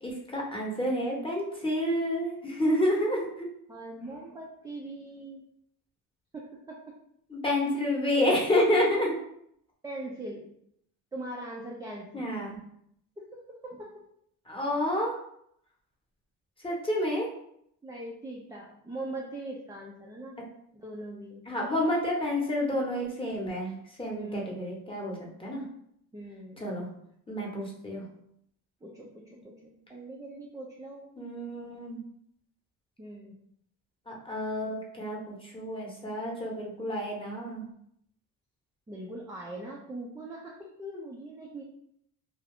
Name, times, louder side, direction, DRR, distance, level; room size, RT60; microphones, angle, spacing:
voice 1, 0.0-3.5 7.3-9.2 12.1-12.6 14.5-15.2 16.6-17.3 21.5-25.6 26.6-26.9 27.3-28.0 31.2-32.0 34.1-37.7, left 1 dB, 10° left, -2 dB, 0.9 m, -29 dB
voice 2, 3.7-5.4 6.3-6.9 9.8-10.5 11.1-12.3 13.2-13.9 17.8-20.4 20.7-21.5 24.1-24.6 26.1-26.7 27.6-27.8 28.8-31.1 33.0-33.3 38.9-41.6, right 1 dB, 10° right, -3 dB, 0.3 m, -41 dB
2.4 x 2.3 x 3.4 m, 0.71 s
supercardioid pair, 80°, 43 cm